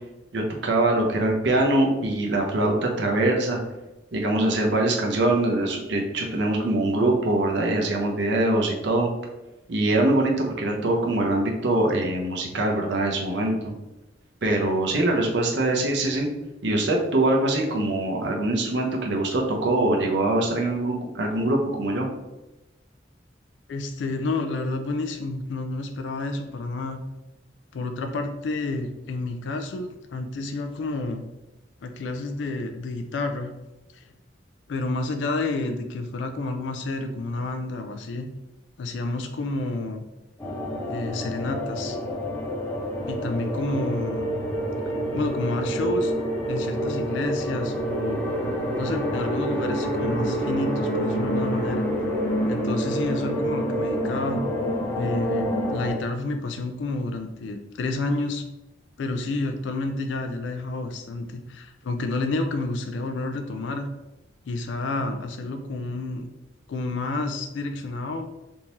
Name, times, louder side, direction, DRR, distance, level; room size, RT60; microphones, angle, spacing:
voice 1, 0.3-3.6 4.1-9.1 9.7-13.7 14.4-16.3 16.6-22.1, right 2 dB, 70° right, 0 dB, 0.7 m, -23 dB
voice 2, 23.7-27.0 27.7-31.2 31.8-33.5 33.9-34.0 34.7-38.3 38.8-40.0 40.8-42.0 43.1-44.3 45.1-46.1 46.5-48.2 48.8-51.9 52.5-54.4 55.0-58.4 59.0-63.9 64.5-66.3 66.7-68.2, left 2 dB, 70° left, 6 dB, 0.3 m, -30 dB
sound 1, 40.4-55.9, equal, 10° left, 0.8 m, -27 dB
3.5 x 2.7 x 2.9 m, 1.0 s
head